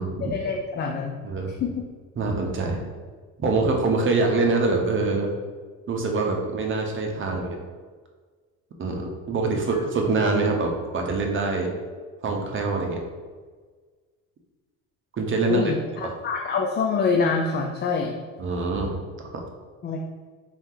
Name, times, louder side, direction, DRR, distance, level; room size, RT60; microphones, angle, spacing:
voice 1, 0.2-1.2 1.6-1.8 9.5-9.6 15.5-18.2 19.8-20.0, left 4 dB, 30° left, 1 dB, 0.4 m, -25 dB
voice 2, 2.2-2.8 3.4-5.3 5.9-7.6 8.8-11.8 12.2-13.0 15.2-15.7 18.4-18.9 19.2-19.3, right 3 dB, 35° right, 2 dB, 0.8 m, -24 dB
4.4 x 2.8 x 3.7 m, 1.5 s
cardioid pair, 100°, 35 cm